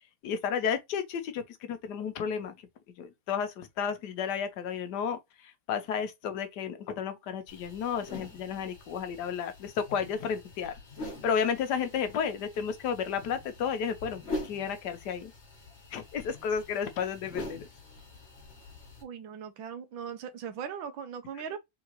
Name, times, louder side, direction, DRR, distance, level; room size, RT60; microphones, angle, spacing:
voice 1, 0.2-2.5 3.0-10.7 11.2-15.3 15.9-17.7, left 7 dB, 65° left, 1.2 m, -32 dB
sound 1, 7.5-19.0, left 2 dB, 40° left, 1.3 m, -44 dB
voice 2, 19.0-21.6, right 7 dB, 75° right, 1.4 m, -39 dB
3.8 x 3.6 x 2.9 m
omnidirectional pair, 2.2 m